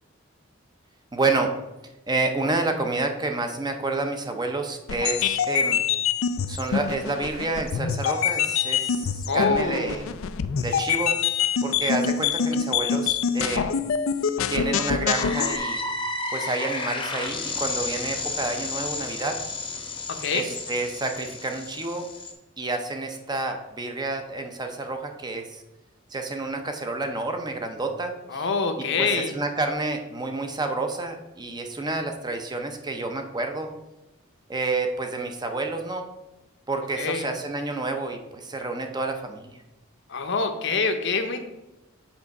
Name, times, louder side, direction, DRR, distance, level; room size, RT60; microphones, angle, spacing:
voice 1, 1.1-1.5 2.1-5.8 6.5-10.0 10.6-11.1 11.6-13.8 14.5-15.8 16.3-19.4 20.3-22.1 22.6-25.6 26.1-28.5 29.0-33.7 34.5-36.1 36.7-39.6, right 3 dB, 20° right, 5 dB, 0.6 m, -29 dB
sound 1, 4.9-15.6, left 7 dB, 75° left, 0.4 m, -25 dB
voice 2, 9.3-10.0 20.2-20.5 28.3-29.3 37.0-37.3 40.1-41.4, left 4 dB, 60° left, 6 dB, 0.8 m, -25 dB
sound 2, 15.1-22.3, left 3 dB, 25° left, 0.8 m, -32 dB
7.2 x 3.6 x 5.3 m, 0.96 s
head